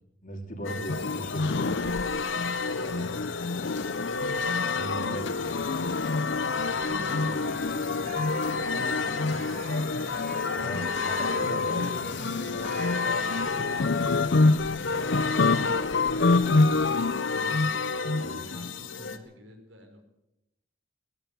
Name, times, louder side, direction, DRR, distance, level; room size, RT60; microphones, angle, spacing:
voice 1, 0.2-1.8 2.8-3.1 4.7-5.6 10.5-12.2 18.2-18.4, equal, 45° left, 4 dB, 3.5 m, -38 dB
sound 1, 0.6-19.2, left 4 dB, 85° left, 1.8 m, -33 dB
voice 2, 0.7-1.0 3.0-4.1 5.0-9.5 12.4-12.8 13.5-20.0, equal, 80° right, 4 dB, 5.0 m, -49 dB
sound 2, 0.9-18.7, left 3 dB, 60° left, 0.7 m, -27 dB
sound 3, 6.8-13.5, right 2 dB, 45° right, 4.0 m, -43 dB
19.0 x 16.5 x 8.5 m, 0.89 s
head